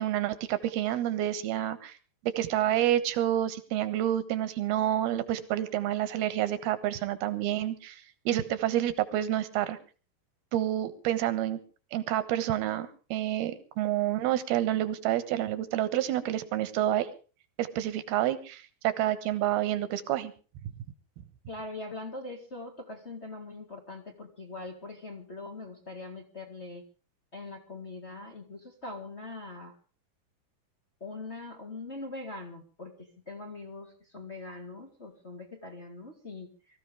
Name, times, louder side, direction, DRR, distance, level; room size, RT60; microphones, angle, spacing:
voice 1, 0.0-1.9 2.2-8.0 8.3-9.8 10.5-11.6 11.9-17.1 17.6-20.3, right 12 dB, 85° right, 12 dB, 3.2 m, -28 dB
voice 2, 21.5-26.8 27.3-29.7 31.0-32.9 33.3-36.5, left 2 dB, 30° left, 4 dB, 1.3 m, -42 dB
23.5 x 14.5 x 3.5 m, 0.36 s
omnidirectional pair, 4.4 m